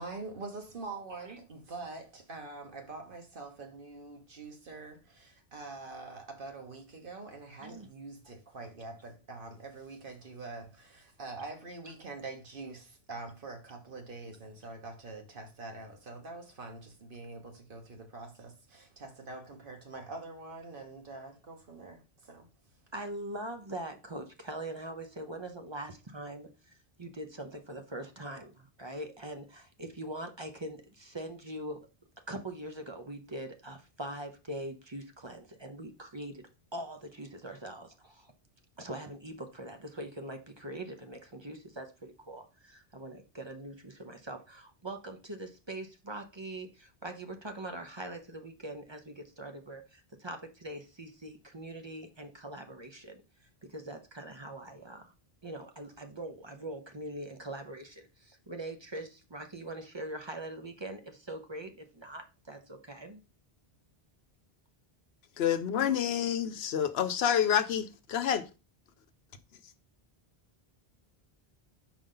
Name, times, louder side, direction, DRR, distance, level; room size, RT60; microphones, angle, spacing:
voice 1, 0.0-22.5, right 3 dB, 60° right, 1.4 m, -45 dB
voice 2, 22.9-31.8 32.3-38.3 38.8-55.1 55.4-63.2, right 1 dB, 30° right, 0.7 m, -42 dB
voice 3, 65.4-68.5 69.6-69.7, left 9 dB, 80° left, 0.9 m, -28 dB
5.3 x 4.9 x 3.8 m
omnidirectional pair, 1.0 m